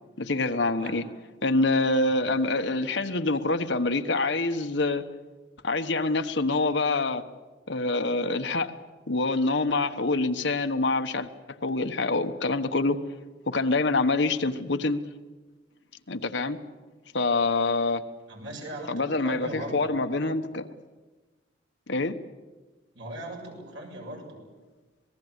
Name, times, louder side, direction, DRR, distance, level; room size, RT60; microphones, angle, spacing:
voice 1, 0.2-1.0 1.4-5.0 5.6-7.2 7.7-8.7 9.1-11.3 11.6-13.0 13.5-15.0 16.1-16.6 17.1-18.0 18.9-20.7 21.9-22.1, left 3 dB, 65° left, 8 dB, 1.2 m, -26 dB
voice 2, 18.3-19.9 22.9-24.4, right 1 dB, 85° right, 1 dB, 7.2 m, -39 dB
27.0 x 19.5 x 8.2 m, 1.3 s
head